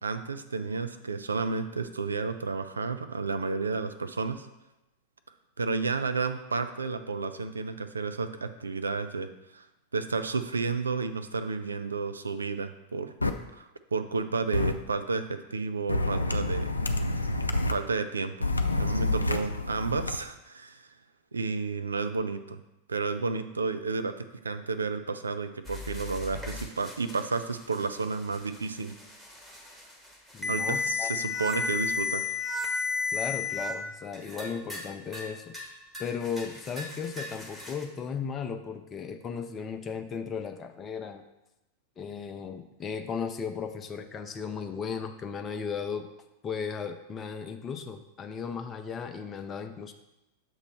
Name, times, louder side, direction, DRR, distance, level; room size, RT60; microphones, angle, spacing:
voice 1, 0.0-4.5 5.6-9.3 9.5-9.6 9.9-13.1 13.5-16.7 17.7-18.5 18.8-20.9 21.3-22.6 22.9-29.0 30.5-32.3, right 4 dB, 75° right, 9 dB, 0.4 m, -31 dB
sound 1, 13.2-13.3 14.5-14.7 15.9-17.7 18.4-20.2, left 2 dB, 80° left, 0.3 m, -28 dB
sound 2, 25.7-33.7 34.1-34.9 35.1-35.7 35.9-37.8, left 4 dB, 5° right, 1.2 m, -34 dB
voice 2, 30.3-31.1 33.1-35.6 36.0-41.2 42.0-46.1 46.4-49.9, left 6 dB, 25° left, 6 dB, 0.6 m, -36 dB
6.5 x 3.0 x 5.5 m, 0.94 s
figure-of-eight pair, 90°, 0 cm